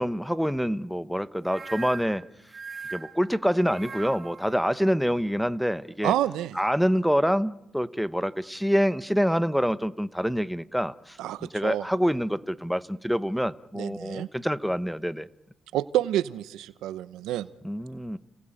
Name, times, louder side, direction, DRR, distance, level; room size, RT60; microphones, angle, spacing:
voice 1, 0.0-2.2 2.9-6.1 6.5-15.3 17.6-18.2, equal, ahead, 12 dB, 1.0 m, -26 dB
sound 1, 1.4-4.5, right 4 dB, 35° right, 1.7 m, -40 dB
voice 2, 6.0-6.6 11.2-11.9 13.7-14.3 15.7-17.5, right 13 dB, 90° right, 14 dB, 0.8 m, -28 dB
29.5 x 19.5 x 9.0 m, 0.95 s
cardioid pair, 90°, 0 cm